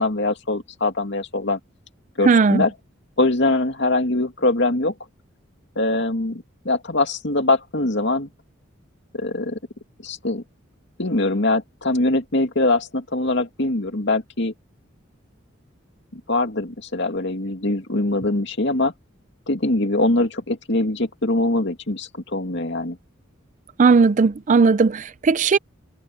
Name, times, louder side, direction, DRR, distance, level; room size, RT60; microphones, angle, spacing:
voice 1, 0.0-1.6 2.2-2.7 3.2-4.9 5.8-8.3 9.1-9.6 10.0-10.4 11.0-14.5 16.1-18.9 19.5-23.0, left 2 dB, 60° left, 2.4 m, -22 dB
voice 2, 2.2-2.6 23.8-25.6, right 4 dB, 40° right, 0.4 m, -16 dB
head